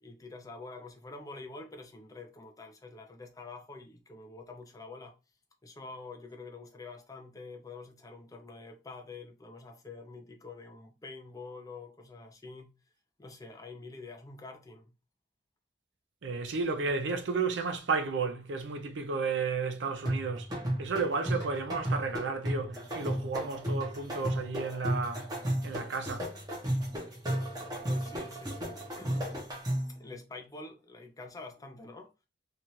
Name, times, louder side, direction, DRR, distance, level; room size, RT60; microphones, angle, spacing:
voice 1, 0.0-5.2 5.6-12.8 13.2-14.9 27.9-29.4 29.9-32.1, left 3 dB, 20° left, 0.4 m, -47 dB
voice 2, 16.2-20.5 20.8-25.3 25.6-26.3, right 4 dB, 70° right, 0.5 m, -32 dB
sound 1, 20.1-30.0, equal, 20° right, 0.8 m, -34 dB
2.8 x 2.4 x 2.9 m
head